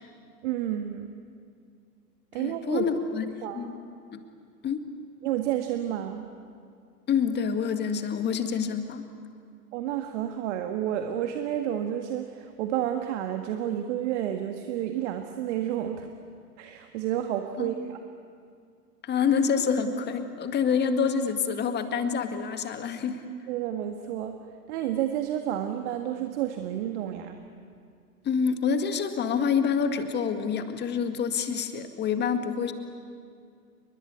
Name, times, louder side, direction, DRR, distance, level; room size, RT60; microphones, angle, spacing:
voice 1, 0.4-1.1 2.3-2.9 3.4-3.7 5.2-6.3 9.7-16.1 16.6-18.0 23.5-24.4 24.7-27.4, right 11 dB, 45° right, 5 dB, 1.9 m, -30 dB
voice 2, 2.4-3.3 3.5-3.8 4.1-4.2 4.6-4.9 7.1-9.1 17.6-17.8 19.0-23.2 28.2-32.7, left 6 dB, 20° left, 7 dB, 2.0 m, -27 dB
29.5 x 23.0 x 8.4 m, 2.3 s
figure-of-eight pair, 105°, 49 cm